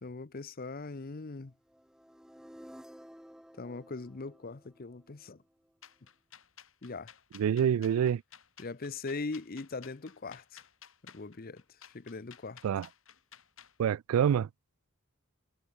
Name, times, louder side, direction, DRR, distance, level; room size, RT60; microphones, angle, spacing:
voice 1, 0.0-1.5 3.6-5.4 6.8-7.1 8.6-10.6 11.0-11.6 11.9-12.6, left 3 dB, 45° left, 0.7 m, -40 dB
sound 1, 1.7-5.7, equal, 5° right, 1.2 m, -54 dB
sound 2, 5.8-13.8, left 9 dB, 65° left, 4.2 m, -55 dB
voice 2, 7.3-8.2 12.6-12.9 13.8-14.5, right 8 dB, 80° right, 0.3 m, -26 dB
head